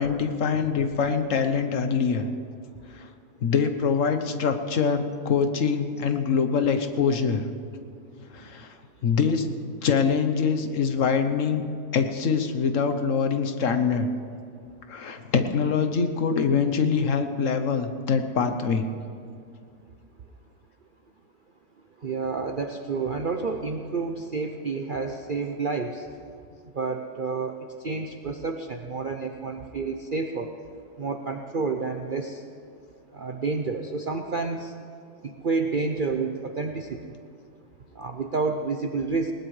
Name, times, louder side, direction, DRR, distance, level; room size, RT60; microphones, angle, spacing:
voice 1, 0.0-2.3 2.9-3.1 3.4-7.4 8.2-8.8 9.0-9.5 9.8-11.6 11.9-14.1 14.9-18.8, left 6 dB, 55° left, 8 dB, 1.2 m, -24 dB
voice 2, 22.0-26.0 26.7-27.6 27.8-30.5 31.0-32.4 33.1-34.7 35.2-37.0 38.0-39.3, right 4 dB, 50° right, 4 dB, 0.6 m, -29 dB
20.0 x 19.0 x 3.2 m, 2.3 s
omnidirectional pair, 1.7 m